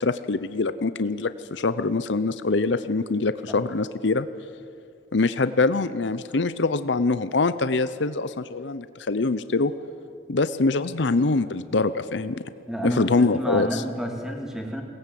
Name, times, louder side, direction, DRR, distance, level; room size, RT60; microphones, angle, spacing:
voice 1, 0.0-4.3 5.1-9.7 10.3-12.3 12.8-13.8, left 3 dB, 65° left, 13 dB, 0.7 m, -24 dB
voice 2, 12.7-14.8, equal, 5° right, 2 dB, 2.9 m, -30 dB
22.5 x 18.5 x 9.3 m, 2.4 s
head